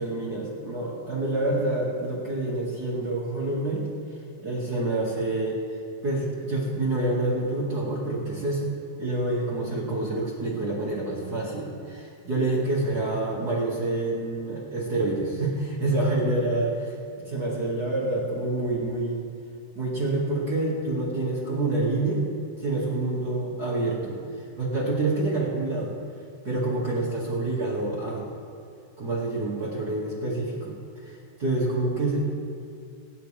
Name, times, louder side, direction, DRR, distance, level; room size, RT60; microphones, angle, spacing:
voice 1, 0.0-3.8 4.4-5.6 6.0-8.7 9.0-19.2 19.7-22.3 22.6-25.9 26.4-28.3 29.0-32.3, right 2 dB, 35° right, -6 dB, 1.7 m, -27 dB
26.0 x 9.9 x 3.4 m, 2.4 s
omnidirectional pair, 4.7 m